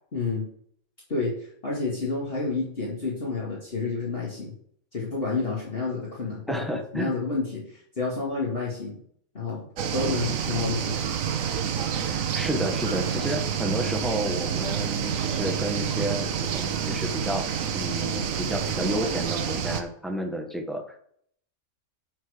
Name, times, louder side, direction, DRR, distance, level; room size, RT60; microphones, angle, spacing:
voice 1, 0.1-0.5 1.1-4.5 4.9-6.7 6.9-9.0 9.3-9.7 9.9-11.0, left 3 dB, 40° left, -6 dB, 2.1 m, -29 dB
voice 2, 6.5-7.1 12.1-21.0, equal, ahead, 4 dB, 1.0 m, -31 dB
sound 1, 9.8-19.8, right 8 dB, 70° right, 1.2 m, -28 dB
10.5 x 4.4 x 5.0 m, 0.63 s
omnidirectional pair, 1.5 m